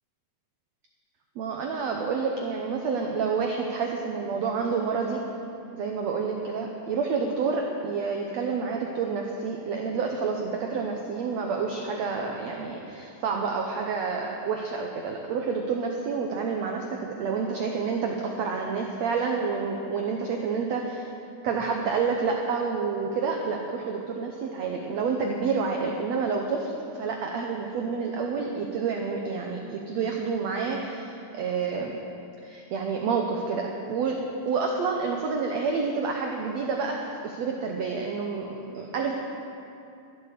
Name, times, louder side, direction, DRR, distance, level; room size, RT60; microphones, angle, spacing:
voice 1, 1.4-5.2 5.7-21.1 21.4-32.0 32.4-34.2 34.4-39.2, right 5 dB, 85° right, 1 dB, 1.5 m, -29 dB
13.5 x 10.5 x 6.8 m, 2.7 s
omnidirectional pair, 4.2 m